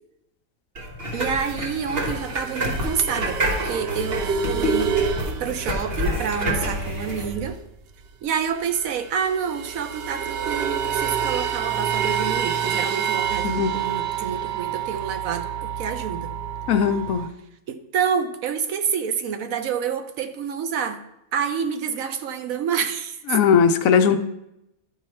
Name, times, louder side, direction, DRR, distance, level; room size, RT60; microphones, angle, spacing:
sound 1, 0.8-7.3, equal, 40° right, 1.5 m, -28 dB
voice 1, 1.1-7.6 8.2-16.3 17.7-21.0 21.3-23.4, right 7 dB, 70° right, 8 dB, 1.1 m, -28 dB
sound 2, 2.0-7.8 8.0-8.1 8.3-17.3, right 8 dB, 85° right, 0.5 m, -28 dB
voice 2, 16.7-17.3 23.3-24.2, left 7 dB, 70° left, 8 dB, 1.0 m, -18 dB
12.0 x 4.8 x 4.4 m, 0.84 s
omnidirectional pair, 1.6 m